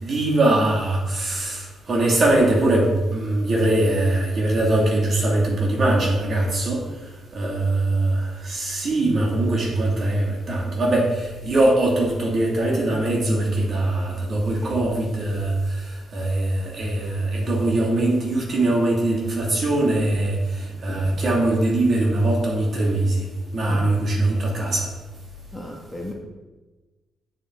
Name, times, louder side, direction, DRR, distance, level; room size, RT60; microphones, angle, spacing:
voice 1, 0.0-6.9 7.3-23.3 23.5-24.9, right 2 dB, 45° right, -1 dB, 2.3 m, -22 dB
voice 2, 25.5-26.1, left 1 dB, 10° left, -1 dB, 1.7 m, -34 dB
8.3 x 7.7 x 3.8 m, 1.2 s
cardioid pair, 105°, 0 cm